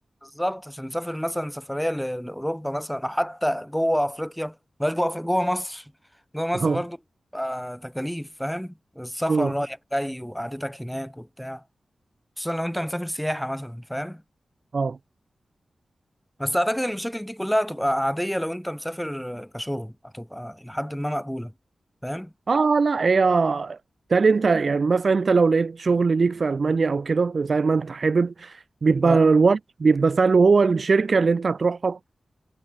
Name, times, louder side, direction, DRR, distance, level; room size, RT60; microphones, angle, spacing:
voice 1, 0.2-5.9 6.3-7.0 7.3-11.6 12.4-14.2 16.4-21.5 22.0-22.3 29.0-29.2, equal, ahead, 2.5 m, -28 dB
voice 2, 22.5-23.8 24.1-32.0, right 4 dB, 45° right, 0.6 m, -20 dB
wide cardioid pair, 165°, 0 cm